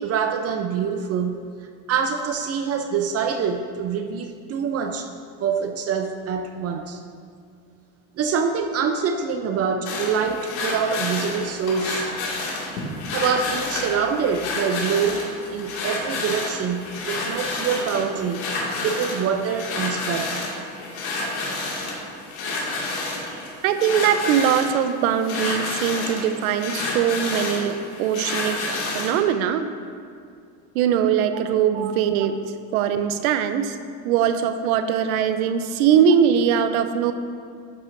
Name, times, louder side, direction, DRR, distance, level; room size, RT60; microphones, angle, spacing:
voice 1, 0.0-1.5 1.9-5.1 5.4-7.0 8.2-12.1 13.1-18.5 18.8-20.5 28.0-28.1 31.7-31.9, right 6 dB, 35° right, 6 dB, 0.5 m, -25 dB
Bed Creak Slow, 9.9-29.2, left 3 dB, 80° left, 2.3 m, -29 dB
voice 2, 23.6-29.7 30.7-32.5 32.7-33.8 34.0-37.1, right 8 dB, 85° right, 10 dB, 0.7 m, -21 dB
11.0 x 8.0 x 2.6 m, 2.3 s
supercardioid pair, 105°, 42 cm